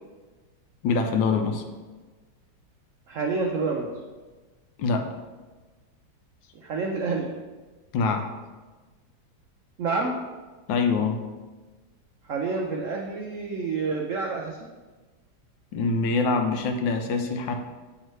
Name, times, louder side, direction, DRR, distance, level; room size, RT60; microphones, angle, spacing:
voice 1, 0.8-1.6 4.8-5.1 7.9-8.3 10.7-11.2 15.7-17.5, left 4 dB, 80° left, 5 dB, 1.3 m, -24 dB
voice 2, 3.1-3.9 6.5-7.3 9.8-10.1 12.3-14.7, right 4 dB, 85° right, 0 dB, 0.6 m, -28 dB
8.8 x 3.6 x 3.1 m, 1.3 s
omnidirectional pair, 2.1 m